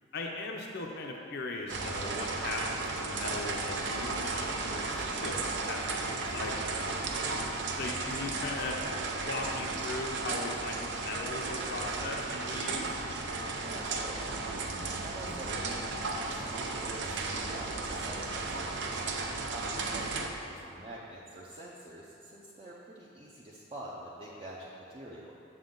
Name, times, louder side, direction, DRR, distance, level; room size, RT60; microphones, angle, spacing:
voice 1, 0.1-6.9 7.7-8.8 9.2-12.9, left 2 dB, 55° left, 1 dB, 0.6 m, -38 dB
sound 1, 1.7-20.3, right 3 dB, 60° right, 0.6 m, -34 dB
voice 2, 13.6-14.3 14.7-19.0 19.5-25.3, right 1 dB, 25° right, -6 dB, 0.6 m, -46 dB
7.2 x 6.9 x 3.8 m, 2.6 s
head